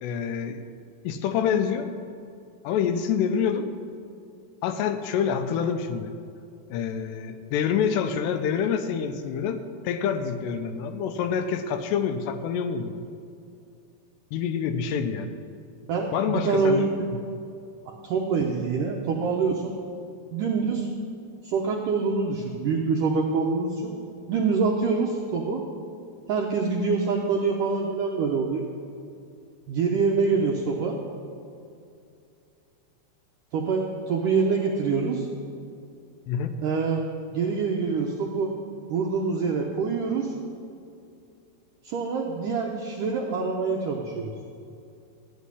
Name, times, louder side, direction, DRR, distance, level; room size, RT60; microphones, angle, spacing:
voice 1, 0.0-0.6 1.0-1.9 2.6-3.7 4.6-6.1 6.7-9.6 9.8-12.9 14.3-15.3 16.1-16.9 36.3-36.6, left 7 dB, 85° left, 8 dB, 2.8 m, -26 dB
voice 2, 15.9-16.9 18.0-19.8 20.3-20.9 21.4-23.9 24.3-25.6 26.3-28.6 29.7-31.0 33.5-35.3 36.6-37.0 37.3-38.5 38.9-40.3 41.8-44.3, right 4 dB, 80° right, 0 dB, 1.9 m, -25 dB
14.5 x 6.4 x 9.8 m, 2.5 s
omnidirectional pair, 5.0 m